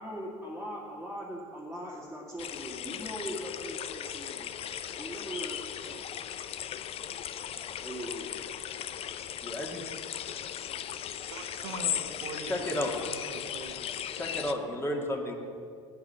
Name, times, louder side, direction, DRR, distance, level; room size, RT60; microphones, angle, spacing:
voice 1, 0.0-4.5 5.0-6.0 7.8-8.5, equal, 5° right, -5 dB, 2.2 m, -40 dB
sound 1, 2.4-14.5, left 10 dB, 40° left, 0.6 m, -37 dB
voice 2, 9.4-9.8 12.5-12.9 14.1-15.3, left 1 dB, 15° left, 1 dB, 2.1 m, -32 dB
voice 3, 11.3-14.2, right 4 dB, 65° right, 4 dB, 1.5 m, -43 dB
10.5 x 8.7 x 6.8 m, 2.4 s
figure-of-eight pair, 65°, 16 cm